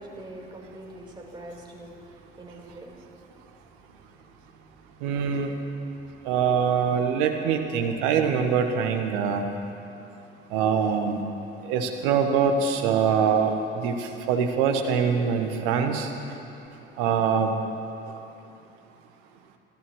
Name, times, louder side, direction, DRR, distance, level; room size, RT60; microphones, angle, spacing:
voice 1, 0.0-3.1 3.4-5.2 6.0-6.3, right 1 dB, 15° right, -2 dB, 4.3 m, -45 dB
voice 2, 5.0-5.5 6.2-9.5 10.5-11.2 11.6-16.1 17.0-17.5 18.1-18.2, right 6 dB, 65° right, 5 dB, 1.5 m, -24 dB
28.0 x 14.0 x 3.2 m, 2.7 s
figure-of-eight pair, 55°, 30 cm